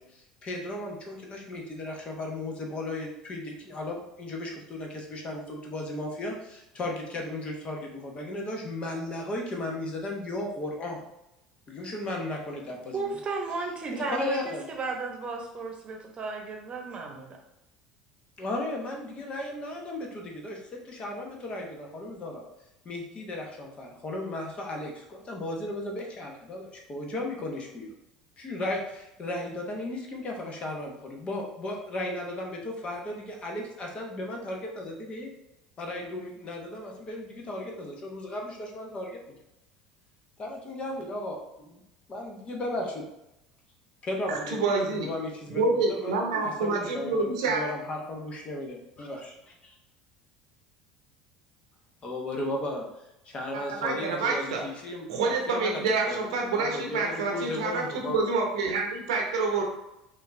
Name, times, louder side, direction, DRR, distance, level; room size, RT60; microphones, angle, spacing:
voice 1, 0.0-11.0 11.7-13.1 13.9-14.7 18.4-22.4 22.8-27.9 28.4-35.3 35.8-39.2 40.4-41.8 42.1-43.0 44.0-45.6 45.9-49.7 52.0-52.8 53.2-58.2, left 1 dB, 35° left, 0 dB, 1.1 m, -35 dB
voice 2, 12.9-17.4, right 4 dB, 30° right, 2 dB, 1.0 m, -34 dB
voice 3, 44.3-45.1 45.5-47.6 53.5-54.6 55.1-59.6, right 3 dB, 70° right, 1 dB, 0.9 m, -27 dB
5.5 x 2.8 x 3.3 m, 0.90 s
figure-of-eight pair, 70°, 3 cm